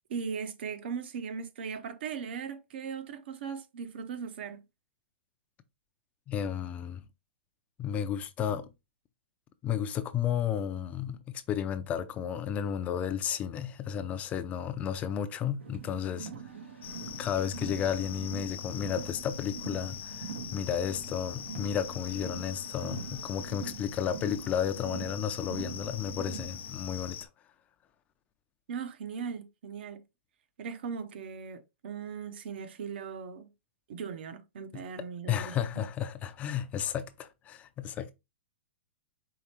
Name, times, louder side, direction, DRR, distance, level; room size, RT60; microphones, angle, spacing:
voice 1, 0.1-4.6 16.5-16.7 28.7-30.0 30.6-33.5 33.9-35.6, right 6 dB, 65° right, 0.8 m, -38 dB
voice 2, 6.3-7.0 7.8-8.6 9.6-16.3 17.1-27.3 35.3-38.1, left 9 dB, 25° left, 0.4 m, -33 dB
Car, 15.6-26.7, right 6 dB, 90° right, 0.9 m, -44 dB
sound 1, 16.8-27.3, left 9 dB, 75° left, 0.5 m, -43 dB
4.8 x 3.2 x 2.9 m
hypercardioid pair, 135°, 6 cm